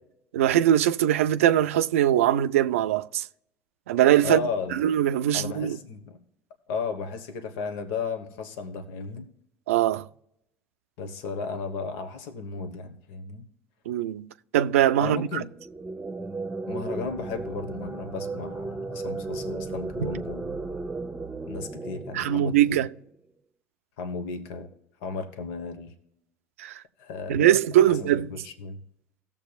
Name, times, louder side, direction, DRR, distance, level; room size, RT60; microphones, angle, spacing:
voice 1, 0.3-3.3 3.9-4.4 4.7-5.8 9.7-10.1 13.9-14.3 14.5-15.3 20.0-20.2 22.1-22.9 26.6-26.8 27.3-28.3, right 11 dB, 90° right, 0.4 m, -21 dB
voice 2, 4.2-4.8 5.3-6.2 6.7-9.3 11.0-13.5 15.0-15.5 16.7-20.6 21.5-22.8 24.0-24.7 25.0-25.9 27.0-27.4 27.9-28.8, left 5 dB, 75° left, 1.2 m, -34 dB
sound 1, 15.6-23.0, right 3 dB, 10° right, 0.8 m, -35 dB
17.5 x 7.3 x 2.4 m
hypercardioid pair, 75°, 7 cm